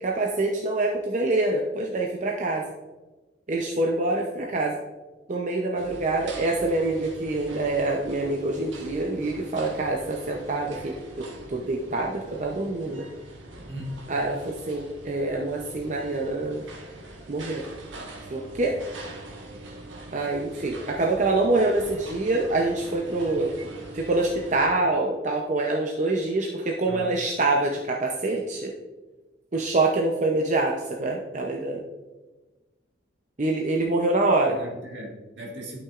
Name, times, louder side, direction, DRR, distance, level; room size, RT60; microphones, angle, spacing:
voice 1, 0.0-2.6 3.5-4.8 5.3-13.1 14.1-16.6 17.3-17.6 18.3-18.8 20.1-23.5 23.9-28.7 29.5-31.8 33.4-34.6, right 2 dB, 40° right, 0 dB, 0.6 m, -25 dB
sound 1, 5.8-24.7, right 2 dB, 85° right, 1.4 m, -43 dB
voice 2, 13.7-14.1 23.3-23.5 26.9-27.1 34.5-35.8, equal, 70° right, -1 dB, 1.8 m, -38 dB
11.0 x 5.9 x 2.5 m, 1.2 s
head